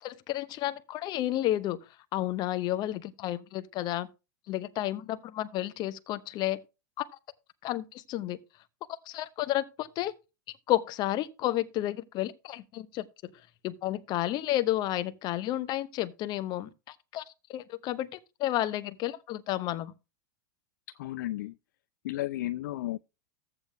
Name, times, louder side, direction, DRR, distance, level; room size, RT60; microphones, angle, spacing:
voice 1, 0.0-1.8 2.1-4.1 4.5-6.6 7.0-7.1 7.6-8.4 9.1-10.1 10.7-13.0 13.6-17.2 17.5-19.9, left 14 dB, 40° left, 0.8 m, -31 dB
voice 2, 21.0-21.5 22.0-23.0, left 15 dB, 60° left, 0.4 m, -33 dB
14.5 x 7.7 x 2.2 m
figure-of-eight pair, 90°, 11 cm